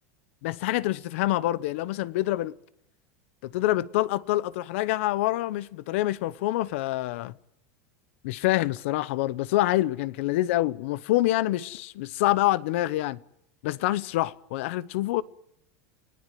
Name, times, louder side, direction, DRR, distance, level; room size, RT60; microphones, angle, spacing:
voice 1, 0.4-2.5 3.4-7.3 8.2-13.2 13.6-15.2, left 16 dB, 60° left, 1.0 m, -26 dB
29.5 x 18.0 x 9.3 m
supercardioid pair, 175°, 8 cm